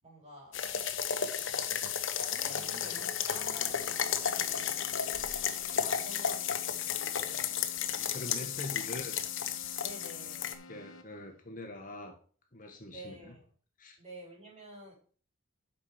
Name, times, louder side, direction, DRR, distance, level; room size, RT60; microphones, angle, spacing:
voice 1, 0.0-0.5 1.5-1.7 2.1-4.8 5.5-7.5 9.8-10.6 12.9-13.4 14.0-14.9, equal, 35° right, -2 dB, 4.6 m, -49 dB
sound 1, 0.5-10.5, left 8 dB, 65° left, 0.9 m, -33 dB
Keyboard (musical), 2.4-11.4, left 2 dB, 85° left, 1.1 m, -52 dB
voice 2, 7.9-9.1 10.7-12.2 12.5-13.3 13.8-14.0, left 2 dB, 40° left, 3 dB, 1.5 m, -43 dB
8.6 x 5.7 x 5.1 m, 0.41 s
head